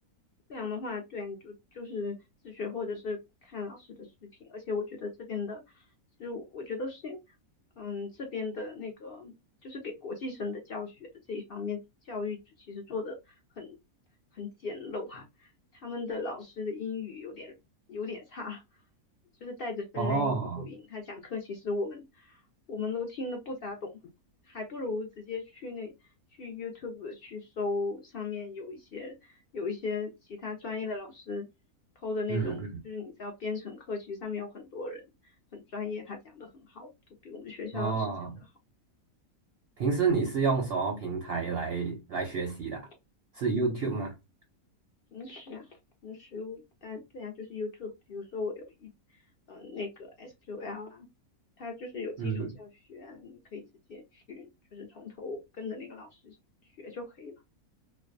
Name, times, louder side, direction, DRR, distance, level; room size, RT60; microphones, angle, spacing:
voice 1, 0.5-2.2 2.4-5.8 6.2-7.2 7.8-9.3 9.6-11.8 12.0-13.8 14.3-15.5 15.7-17.5 17.9-18.6 19.4-22.4 22.7-23.9 24.5-25.9 26.4-31.5 32.0-35.0 35.5-36.9 37.2-38.1 38.4-38.5 45.1-45.7 46.0-48.9 49.5-51.1 51.6-53.6 53.9-56.4 56.8-57.3, left 4 dB, 65° left, 0.5 m, -37 dB
voice 2, 20.0-20.7 32.3-32.7 37.7-38.3 39.8-42.9 43.3-44.1 52.2-52.5, right 4 dB, 60° right, 0.6 m, -29 dB
2.5 x 2.1 x 2.5 m
omnidirectional pair, 1.6 m